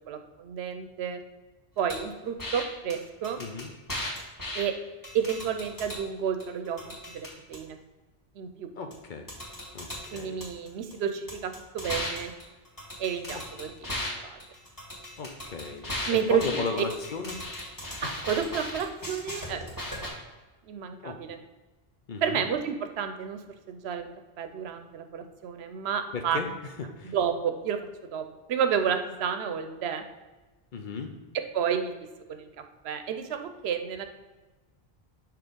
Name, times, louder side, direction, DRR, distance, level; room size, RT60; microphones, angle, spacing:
voice 1, 0.1-1.2 1.8-3.4 4.5-4.7 5.1-7.8 8.4-8.7 10.1-12.3 13.0-14.4 16.1-16.8 18.0-19.7 20.7-21.4 22.2-23.4 23.7-24.1 24.4-26.4 27.0-27.8 28.1-30.1 31.3-31.9 32.3-32.5 32.8-34.1, right 7 dB, 85° right, 7 dB, 0.8 m, -31 dB
sound 1, 1.9-2.0 2.4-2.6 2.9-3.0 3.2-4.6 5.0-6.0 6.4-7.6 8.9-9.0 9.3-10.9 11.3-14.1 14.4-20.1, left 1 dB, 20° left, 1.9 m, -37 dB
voice 2, 3.4-3.7 8.8-9.3 9.7-9.9 10.1-10.4 13.3-13.4 15.2-17.4 18.0-18.1 21.0-21.2 22.1-22.4 26.1-26.5 27.0-27.1 30.7-31.1, left 4 dB, 55° left, 5 dB, 0.7 m, -35 dB
6.1 x 3.0 x 5.1 m, 1.2 s
omnidirectional pair, 1.1 m